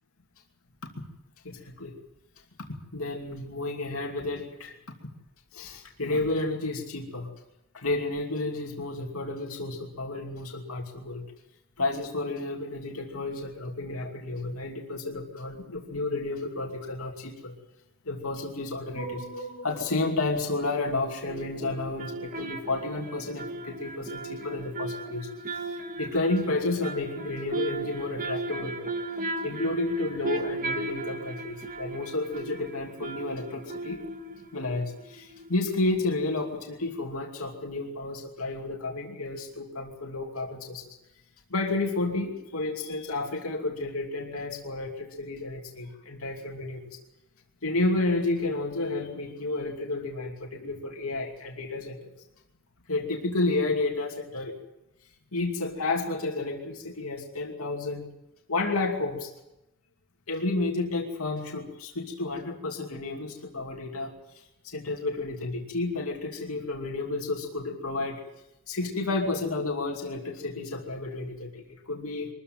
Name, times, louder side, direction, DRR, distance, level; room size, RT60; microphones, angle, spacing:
voice 1, 1.4-1.9 2.9-4.8 5.5-7.3 7.7-11.2 11.8-17.5 18.1-25.3 25.6-28.9 29.4-34.0 34.5-40.8 41.5-46.9 47.6-52.0 52.9-54.5 55.3-58.1 58.5-59.3 60.3-64.1 64.6-68.2 68.7-72.3, left 2 dB, 85° left, 1 dB, 2.7 m, -31 dB
sound 1, 19.0-20.2 21.3-35.8 36.1-36.2, right 2 dB, 40° right, 2.0 m, -37 dB
23.0 x 14.5 x 9.3 m, 0.91 s
head